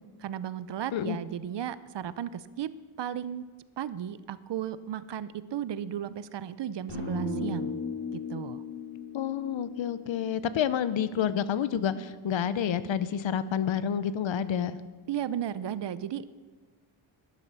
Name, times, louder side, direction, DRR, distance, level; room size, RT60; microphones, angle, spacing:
voice 1, 0.2-2.7 3.0-3.4 3.8-7.8 8.1-8.6 15.1-16.3, right 10 dB, 60° right, 16 dB, 0.6 m, -35 dB
sound 1, 6.9-11.0, left 2 dB, 85° left, 4.1 m, -36 dB
voice 2, 9.1-14.8, left 8 dB, 65° left, 15 dB, 0.8 m, -29 dB
12.0 x 11.5 x 6.8 m, 1.4 s
wide cardioid pair, 150°, 49 cm